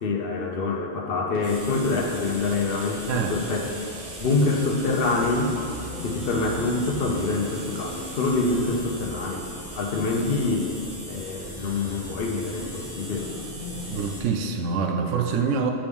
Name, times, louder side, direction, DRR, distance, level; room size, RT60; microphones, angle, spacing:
voice 1, 0.0-3.7 4.2-5.6 6.0-9.5 9.8-10.7 11.1-13.3 15.3-15.5, left 3 dB, 55° left, 1 dB, 0.9 m, -26 dB
sound 1, 1.3-11.2 11.5-11.6, right 4 dB, 55° right, 0.7 m, -48 dB
sound 2, 1.4-14.2, left 1 dB, 10° right, 1.4 m, -38 dB
voice 2, 13.9-15.7, right 5 dB, 90° right, 4 dB, 1.0 m, -25 dB
8.3 x 5.1 x 3.5 m, 2.8 s
omnidirectional pair, 1.3 m